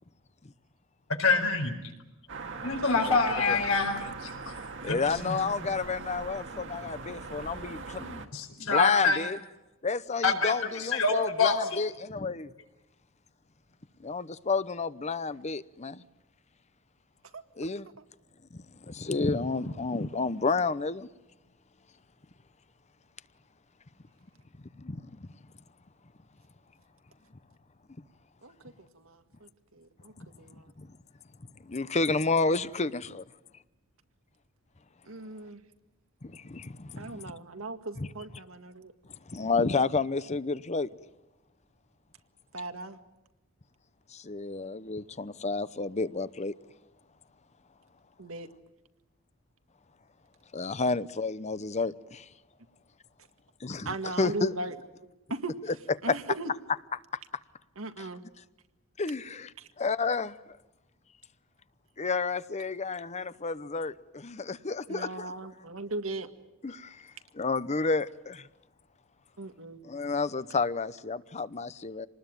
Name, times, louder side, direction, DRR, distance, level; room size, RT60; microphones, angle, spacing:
voice 1, 1.2-1.7 2.6-4.3 4.9-5.0 5.2-5.3 8.3-9.2 10.2-10.5 10.8-11.8, left 4 dB, 85° left, 4.6 m, -26 dB
sound 1, 2.3-8.3, right 4 dB, 65° right, 2.0 m, -40 dB
voice 2, 4.8-8.3 8.6-9.4 9.8-12.5 14.0-16.0 17.6-17.9 18.9-21.1 24.8-25.1 30.2-30.3 30.8-30.9 31.7-33.2 36.2-37.3 38.0-38.1 39.3-40.9 44.1-46.5 50.5-52.2 53.6-54.5 56.1-56.2 58.0-58.1 59.0-60.4 62.0-65.3 66.6-67.0 67.3-68.4 69.8-72.1, left 4 dB, 35° left, 0.8 m, -30 dB
voice 3, 28.4-30.7 35.1-35.6 37.0-38.9 42.5-43.0 48.2-48.5 53.9-54.8 55.0-55.5 56.0-56.5 57.8-58.2 59.6-59.7 64.9-66.3 69.4-69.8, right 2 dB, 80° right, 1.9 m, -38 dB
27.0 x 20.0 x 9.2 m
head